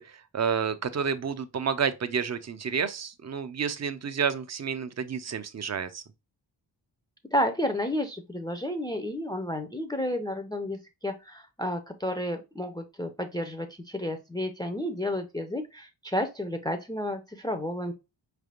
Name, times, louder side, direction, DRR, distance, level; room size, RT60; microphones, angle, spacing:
voice 1, 0.0-6.0, right 6 dB, 40° right, 0.6 m, -30 dB
voice 2, 7.3-17.9, left 1 dB, 10° left, 0.5 m, -31 dB
4.9 x 3.4 x 2.3 m
wide cardioid pair, 105°, 43 cm